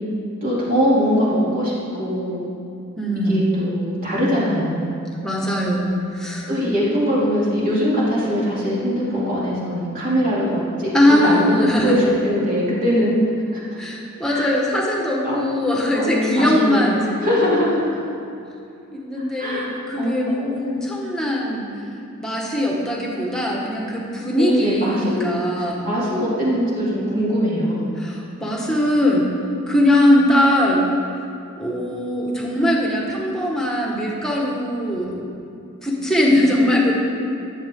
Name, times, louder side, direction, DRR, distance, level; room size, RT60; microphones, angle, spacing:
voice 1, 0.4-2.4 3.2-4.9 6.5-13.2 13.5-13.6 14.3-14.5 15.2-17.8 19.4-20.8 24.4-27.9, equal, 40° right, -8 dB, 3.2 m, -22 dB
voice 2, 3.0-3.5 5.2-6.5 10.9-12.0 13.8-17.4 18.9-21.7 22.2-25.9 28.0-29.3 29.7-30.9 31.6-35.2 35.8-36.9, left 1 dB, 5° left, -3 dB, 1.7 m, -20 dB
21.5 x 8.2 x 3.9 m, 2.6 s
head